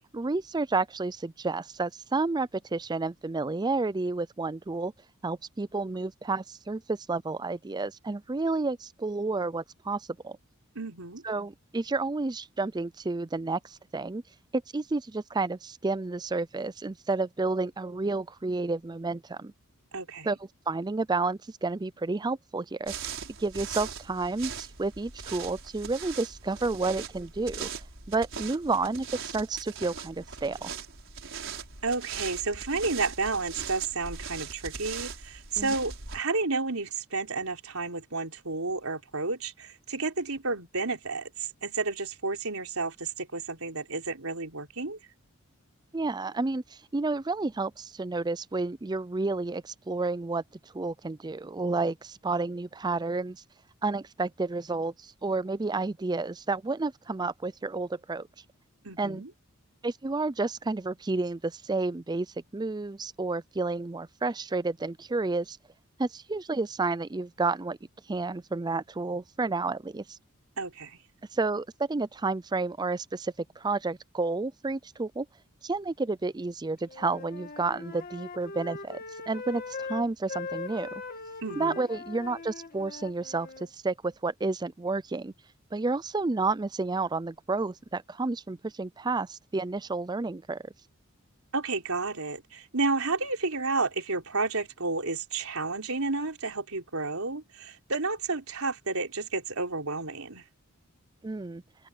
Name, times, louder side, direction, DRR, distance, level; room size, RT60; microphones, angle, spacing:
voice 1, 0.1-4.9 5.2-10.4 11.2-14.2 14.5-19.5 20.2-22.9 23.4-27.7 28.1-30.7 35.6-35.7 45.9-50.4 50.7-53.4 53.8-58.3 59.0-59.2 59.8-62.3 62.5-65.6 66.0-67.8 68.1-70.2 71.3-75.3 75.6-81.0 81.6-83.5 83.7-85.3 85.7-90.7 101.2-101.6, right 3 dB, 20° right, 0.4 m, -30 dB
voice 2, 10.8-11.2 19.9-20.4 31.8-45.0 58.8-59.3 70.6-71.0 81.4-81.9 91.5-100.4, right 3 dB, 90° right, 4.1 m, -31 dB
sound 1, 22.8-36.2, right 6 dB, 60° right, 6.0 m, -40 dB
Wind instrument woodwind instrument, 76.9-83.7, left 3 dB, 45° left, 2.2 m, -40 dB
head